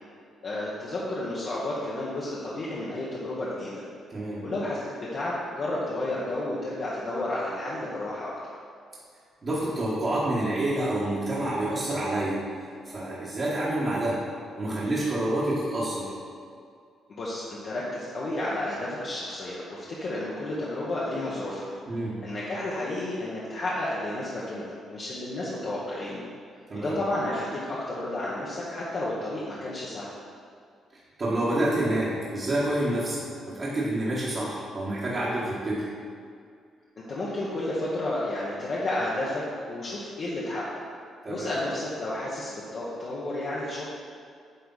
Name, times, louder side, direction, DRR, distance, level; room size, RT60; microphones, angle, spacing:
voice 1, 0.4-3.8 4.4-8.5 17.1-21.7 22.2-26.2 26.7-30.1 37.0-39.4 39.7-40.8 41.3-43.8, left 1 dB, 50° left, -7 dB, 1.1 m, -31 dB
voice 2, 4.1-4.4 9.4-12.4 12.8-14.2 14.6-16.1 21.9-22.2 26.7-27.0 31.2-35.9 41.2-41.5, right 1 dB, 40° right, -8 dB, 1.5 m, -28 dB
9.3 x 3.4 x 4.1 m, 2.2 s
cardioid pair, 90°, 0 cm